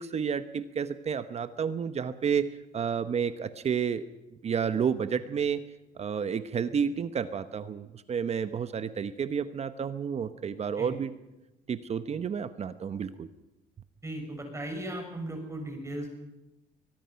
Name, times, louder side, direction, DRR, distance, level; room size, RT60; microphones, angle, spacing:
voice 1, 0.0-2.5 2.7-4.1 4.4-5.6 6.0-11.1 11.7-13.3, right 7 dB, 40° right, 12 dB, 1.0 m, -30 dB
voice 2, 14.0-16.1, right 1 dB, 15° right, 3 dB, 6.1 m, -37 dB
23.0 x 21.0 x 5.8 m, 0.98 s
cardioid pair, 110°, 17 cm